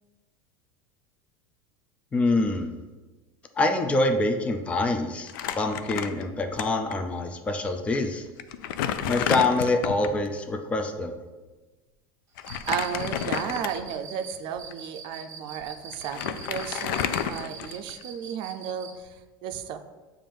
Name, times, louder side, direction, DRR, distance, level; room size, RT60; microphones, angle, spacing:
voice 1, 2.1-2.7 3.6-8.2 9.1-11.1, left 2 dB, 10° left, 5 dB, 0.4 m, -25 dB
Crumpling crinkling, 5.3-6.6 6.9-7.0 7.9-8.0 8.4-10.2 12.4-14.0 14.6-14.7 15.6-15.7 15.9-18.0, left 9 dB, 80° left, 0.4 m, -30 dB
Cricket, 12.4-19.0, right 6 dB, 25° right, 1.0 m, -43 dB
voice 2, 12.7-19.8, right 8 dB, 50° right, 7 dB, 0.5 m, -34 dB
7.2 x 2.5 x 5.2 m, 1.2 s
supercardioid pair, 150°, 11 cm